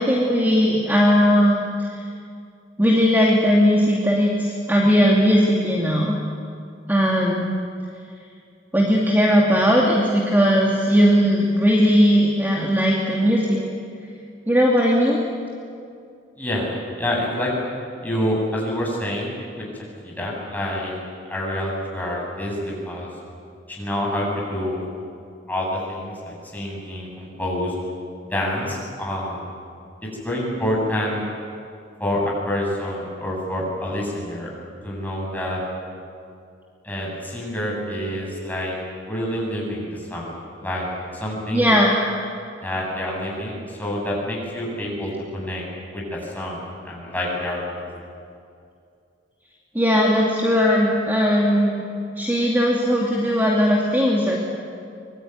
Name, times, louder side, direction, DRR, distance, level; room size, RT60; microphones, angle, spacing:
voice 1, 0.0-1.6 1.9-2.0 2.8-6.2 6.9-7.6 8.7-13.6 14.5-15.2 41.5-41.9 49.7-51.8 52.2-54.4, equal, 10° right, -2 dB, 2.6 m, -18 dB
voice 2, 16.4-17.5 18.0-19.7 20.0-21.0 21.3-23.1 23.7-24.8 25.5-27.7 28.3-29.5 30.0-31.2 32.0-34.5 34.8-35.6 36.8-38.8 39.1-40.9 41.1-41.7 42.6-45.6 45.9-47.8, left 1 dB, 10° left, -3 dB, 7.9 m, -27 dB
25.0 x 22.5 x 9.5 m, 2.4 s
head